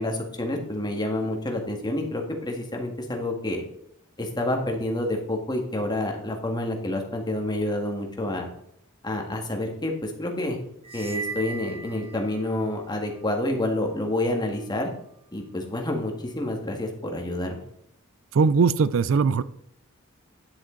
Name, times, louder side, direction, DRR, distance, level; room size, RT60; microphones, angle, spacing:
voice 1, 0.0-3.6 4.2-8.5 9.0-10.6 10.9-14.9 15.3-17.6, left 1 dB, 20° left, 2 dB, 1.7 m, -28 dB
sound 1, 10.8-12.7, right 4 dB, 25° right, 0.6 m, -37 dB
voice 2, 18.3-19.4, right 5 dB, 65° right, 16 dB, 0.4 m, -20 dB
10.0 x 7.7 x 3.8 m, 0.73 s
head